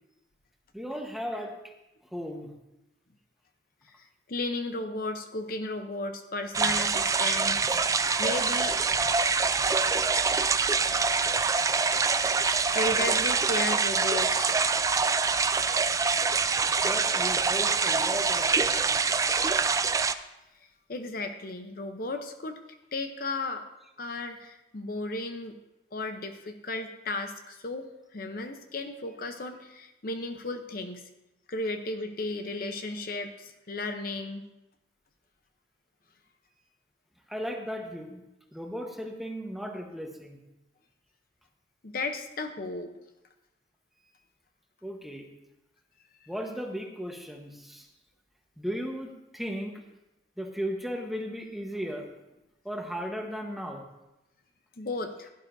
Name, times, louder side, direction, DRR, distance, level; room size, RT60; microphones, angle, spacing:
voice 1, 0.7-1.5 2.1-2.5 16.8-19.0 37.3-38.2 38.5-40.4 44.8-45.3 46.3-47.9 48.6-49.8 50.4-52.1 52.6-53.8, equal, ahead, 2 dB, 1.1 m, -36 dB
voice 2, 3.9-8.8 11.7-11.8 12.7-14.6 20.9-22.6 22.9-23.6 24.0-25.6 25.9-31.1 31.5-34.4 41.8-42.9 54.8-55.3, left 2 dB, 55° left, 6 dB, 0.7 m, -34 dB
sound 1, 6.5-20.1, right 4 dB, 20° right, 0.3 m, -25 dB
16.0 x 11.0 x 2.6 m, 0.95 s
head